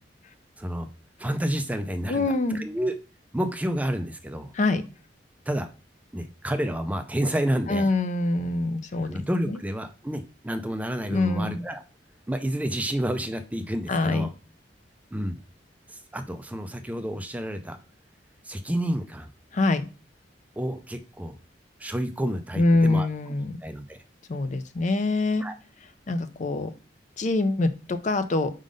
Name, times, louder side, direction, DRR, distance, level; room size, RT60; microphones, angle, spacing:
voice 1, 0.6-0.9 1.2-3.0 3.3-4.5 5.5-5.7 6.1-7.9 9.0-11.8 12.3-14.3 15.1-15.4 15.9-17.8 18.5-19.3 20.6-21.4 21.8-23.1 23.6-24.0 25.4-25.5, right 1 dB, 10° right, 8 dB, 0.4 m, -29 dB
voice 2, 2.1-2.6 4.5-4.8 7.7-9.6 11.1-11.6 13.9-14.3 19.5-19.9 22.6-23.5 24.3-25.4 26.1-26.7 27.2-28.5, left 2 dB, 45° left, 10 dB, 0.5 m, -24 dB
5.1 x 3.8 x 5.1 m, 0.35 s
head